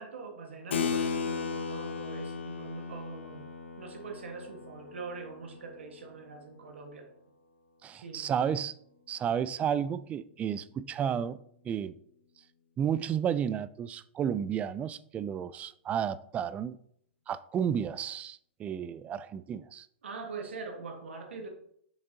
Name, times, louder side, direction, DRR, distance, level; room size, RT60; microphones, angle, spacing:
voice 1, 0.0-3.5 3.8-7.1 7.9-8.3 20.0-21.5, right 4 dB, 90° right, 1.5 m, -43 dB
Keyboard (musical), 0.7-6.7, left 6 dB, 85° left, 0.8 m, -36 dB
voice 2, 7.8-8.7 9.1-11.4 11.6-11.9 12.8-16.8 17.3-19.9, right 8 dB, 20° right, 0.3 m, -32 dB
6.8 x 6.1 x 2.8 m
hypercardioid pair, 130°, 6 cm